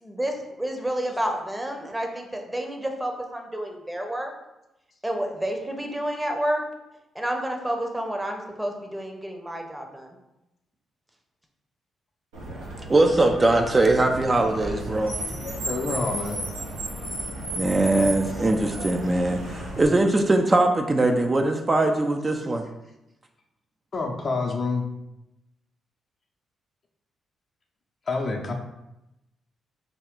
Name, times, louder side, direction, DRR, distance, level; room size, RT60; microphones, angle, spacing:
voice 1, 0.0-4.3 5.0-6.6 7.1-10.2, right 1 dB, 15° right, 3 dB, 0.8 m, -30 dB
Car, 12.3-19.9, right 1 dB, 85° right, 0.9 m, -34 dB
voice 2, 12.9-15.1 17.5-22.6, right 2 dB, 30° right, 4 dB, 0.4 m, -21 dB
voice 3, 15.4-16.4 23.9-24.9 28.1-28.5, left 3 dB, 50° left, 2 dB, 0.6 m, -28 dB
3.5 x 2.3 x 3.6 m, 0.91 s
hypercardioid pair, 45°, 0 cm